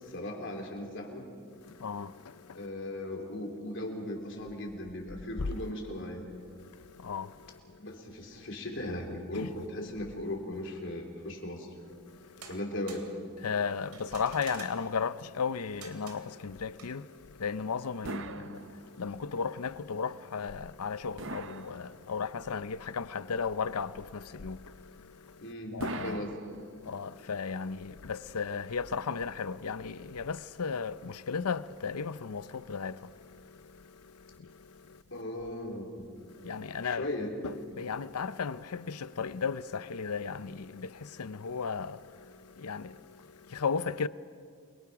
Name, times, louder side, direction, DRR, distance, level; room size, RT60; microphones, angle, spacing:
voice 1, 0.0-1.3 2.5-6.3 7.8-11.7 12.5-13.1 18.0-18.2 25.4-25.8 26.0-26.3 35.1-36.1 36.8-37.3, left 1 dB, 55° left, 3.9 m, -37 dB
voice 2, 1.5-2.7 5.4-5.7 6.4-7.9 9.3-9.5 11.9-12.6 13.4-26.2 26.7-35.0 36.2-37.1 37.4-44.1, left 5 dB, 90° left, 0.6 m, -36 dB
sound 1, 12.4-13.1 13.9-14.9 15.8-16.3 16.8-17.0, right 5 dB, 80° right, 3.3 m, -48 dB
sound 2, 18.0-19.2 21.2-22.4 25.8-27.1, right 3 dB, 60° right, 0.9 m, -42 dB
29.0 x 23.0 x 6.0 m
head